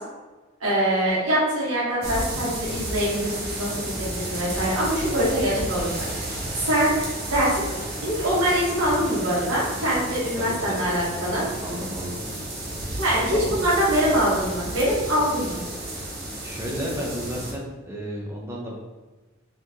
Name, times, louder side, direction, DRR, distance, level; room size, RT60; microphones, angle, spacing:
voice 1, 0.6-5.9 6.5-6.9 7.3-7.6 8.0-11.4 13.0-15.6, equal, 80° right, -8 dB, 1.3 m, -23 dB
sound 1, 2.0-17.5, right 1 dB, 50° right, 0.9 m, -32 dB
voice 2, 10.4-10.8 11.6-12.2 13.3-13.7 16.4-18.8, equal, 10° right, -3 dB, 0.6 m, -33 dB
4.0 x 3.1 x 2.8 m, 1.2 s
head